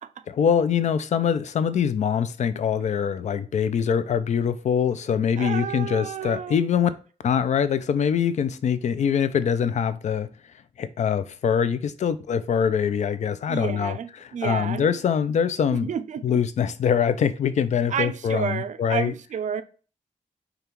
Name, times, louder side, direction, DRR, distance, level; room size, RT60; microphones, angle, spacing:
voice 1, 0.3-6.9 7.2-10.3 10.8-15.9 16.2-19.1, left 7 dB, 65° left, 0.4 m, -24 dB
voice 2, 5.4-6.6 13.5-14.9 15.8-16.4 17.9-19.6, right 8 dB, 70° right, 0.4 m, -30 dB
5.1 x 2.4 x 4.4 m
wide cardioid pair, 175°, 13 cm